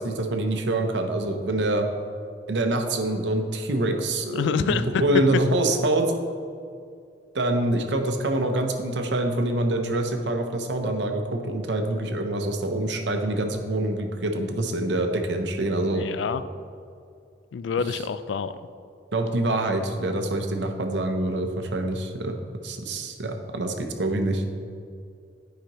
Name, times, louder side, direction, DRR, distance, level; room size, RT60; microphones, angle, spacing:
voice 1, 0.0-1.9 2.5-6.1 7.3-16.1 19.1-22.3 22.6-24.4, right 1 dB, 75° right, 5 dB, 0.7 m, -25 dB
voice 2, 4.3-5.0 15.8-16.4 17.5-18.5, left 6 dB, 90° left, 13 dB, 0.3 m, -27 dB
10.5 x 4.9 x 3.0 m, 2.3 s
head